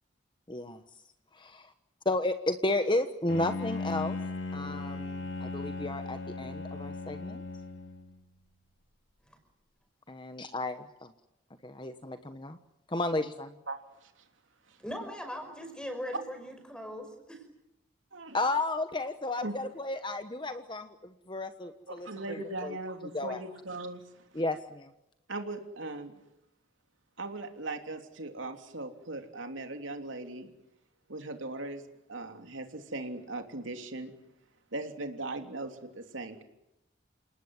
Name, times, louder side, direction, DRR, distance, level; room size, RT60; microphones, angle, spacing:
voice 1, 0.5-0.8 1.3-1.7 2.0-4.2 4.5-7.4 10.1-11.1 11.6-12.6 12.9-13.6 18.3-22.8 23.1-23.4 24.3-24.9, left 2 dB, 25° left, 9 dB, 1.2 m, -33 dB
Bowed string instrument, 3.3-8.2, left 3 dB, 70° left, 2.9 m, -37 dB
voice 2, 13.7-14.3 14.7-14.8 18.1-18.4 19.4-19.6 21.9-24.4 25.3-26.1 27.2-30.5 31.1-31.8 32.1-34.1 34.7-36.4, right 2 dB, 80° right, 5 dB, 3.2 m, -39 dB
voice 3, 14.8-17.4, equal, 5° left, 6 dB, 5.5 m, -40 dB
29.0 x 19.0 x 9.6 m, 0.87 s
head